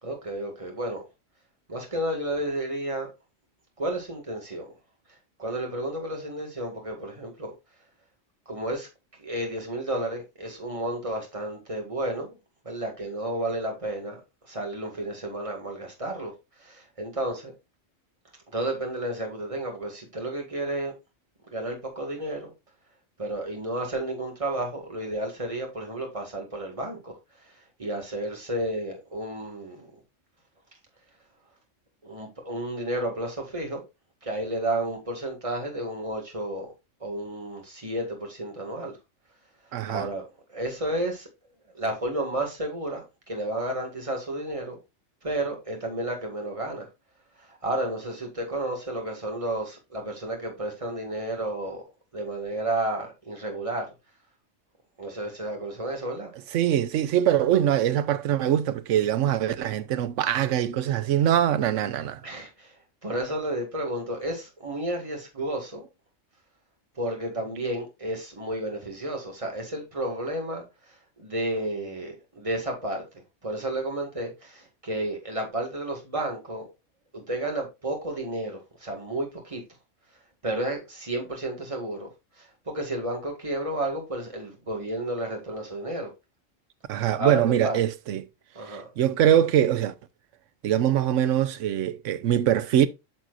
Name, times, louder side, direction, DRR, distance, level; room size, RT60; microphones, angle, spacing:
voice 1, 0.0-1.0 1.7-3.1 3.8-4.7 5.4-7.5 8.5-8.9 9.2-12.4 12.7-14.2 14.5-16.3 16.6-17.5 18.5-20.9 21.5-22.5 23.2-27.1 27.8-29.9 32.0-33.8 34.2-36.7 37.0-39.0 39.9-40.2 40.5-41.3 41.7-44.8 45.2-46.9 47.5-51.8 52.1-53.9 55.0-56.3 62.2-62.7 63.0-65.9 67.0-70.6 71.2-73.1 73.4-76.6 77.1-79.6 80.4-82.1 82.7-86.1 87.2-87.8 88.6-88.9, right 1 dB, 25° right, 1.9 m, -31 dB
voice 2, 39.7-40.1 56.5-62.2 86.9-88.3 88.7-89.9 90.6-92.9, right 11 dB, 75° right, 1.0 m, -23 dB
9.0 x 6.0 x 2.5 m
omnidirectional pair, 1.3 m